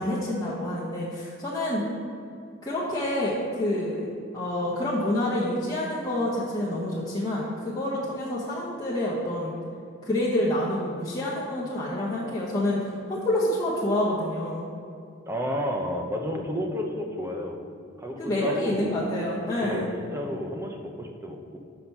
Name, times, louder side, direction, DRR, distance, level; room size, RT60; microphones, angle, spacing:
voice 1, 0.0-1.8 2.6-9.5 10.0-14.6 18.2-19.9, left 1 dB, 20° left, -7 dB, 1.0 m, -28 dB
voice 2, 15.3-17.6 18.0-18.9 19.6-21.6, equal, 15° right, 2 dB, 0.7 m, -31 dB
6.3 x 5.9 x 5.5 m, 2.5 s
head